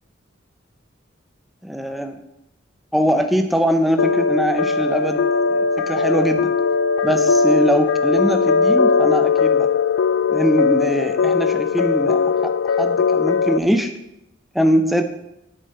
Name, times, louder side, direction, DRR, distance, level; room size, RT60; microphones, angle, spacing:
voice 1, 1.6-2.2 2.9-6.5 7.0-9.7 10.3-13.9 14.5-15.0, equal, ahead, 7 dB, 0.6 m, -22 dB
sound 1, 4.0-13.6, left 5 dB, 85° left, 0.4 m, -19 dB
9.2 x 8.6 x 4.3 m, 0.86 s
head